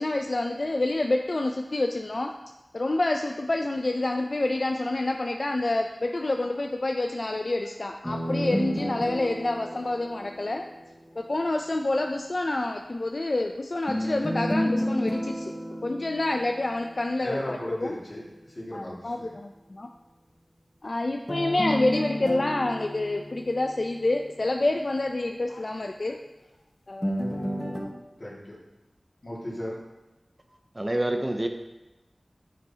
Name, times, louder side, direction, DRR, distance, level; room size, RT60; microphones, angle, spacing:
voice 1, 0.0-2.3 2.7-10.6 11.2-15.5 15.8-17.9 18.7-19.9 20.8-26.2 26.9-27.3, left 2 dB, 55° left, 3 dB, 0.4 m, -28 dB
sound 1, 8.0-11.1 13.9-17.1 21.3-24.4 27.0-27.8, equal, 10° left, 1.2 m, -31 dB
voice 2, 17.2-19.3 28.2-28.6 29.2-29.8, left 1 dB, 40° left, -4 dB, 2.0 m, -36 dB
voice 3, 30.8-31.5, right 1 dB, 25° right, 5 dB, 0.6 m, -26 dB
8.9 x 6.4 x 2.8 m, 1.0 s
wide cardioid pair, 65°, 0 cm